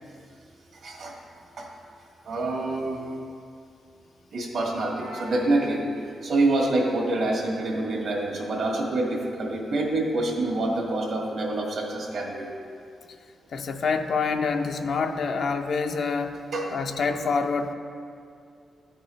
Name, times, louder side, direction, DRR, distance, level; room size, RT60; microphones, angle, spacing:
voice 1, 0.7-1.1 1.6-1.7 2.3-3.0 4.3-12.5 16.5-16.7 17.1-17.2, right 2 dB, 75° right, -1 dB, 1.7 m, -26 dB
voice 2, 13.5-16.4 16.7-17.7, left 4 dB, 65° left, 6 dB, 0.5 m, -26 dB
12.5 x 5.4 x 3.1 m, 2.4 s
cardioid pair, 85°, 0 cm